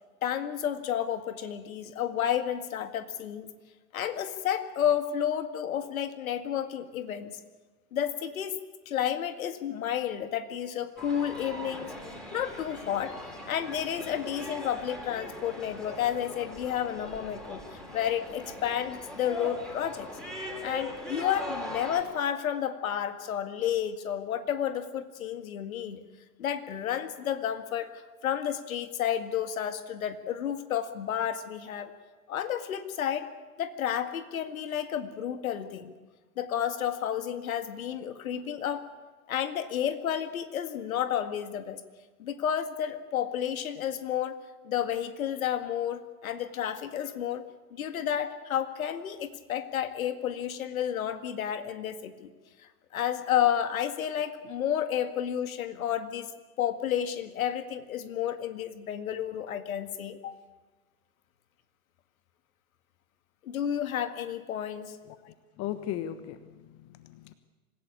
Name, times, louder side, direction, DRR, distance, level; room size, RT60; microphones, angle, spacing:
voice 1, 0.2-3.5 3.9-7.4 7.9-8.6 8.9-11.9 12.3-13.2 13.5-17.6 17.9-20.1 20.6-26.0 26.4-31.9 32.3-33.3 33.6-35.9 36.4-38.9 39.3-41.8 42.2-44.4 44.6-47.4 47.7-52.3 52.6-56.3 56.6-60.3 63.4-65.0, left 10 dB, 65° left, 10 dB, 2.0 m, -31 dB
sound 1, 11.0-22.0, equal, ahead, 5.1 m, -41 dB
voice 2, 65.1-67.3, left 11 dB, 35° left, 12 dB, 1.2 m, -38 dB
26.0 x 16.0 x 8.5 m, 1.3 s
figure-of-eight pair, 100°, 45 cm